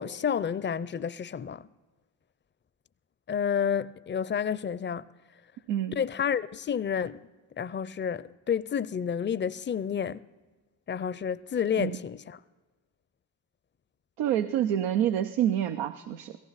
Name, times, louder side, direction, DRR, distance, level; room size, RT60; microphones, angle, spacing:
voice 1, 0.0-1.7 3.3-5.0 6.0-7.2 7.6-10.2 10.9-12.4, left 7 dB, 25° left, 0.5 m, -30 dB
voice 2, 14.2-16.4, right 10 dB, 90° right, 0.6 m, -27 dB
17.0 x 15.0 x 4.1 m
supercardioid pair, 40°, 47 cm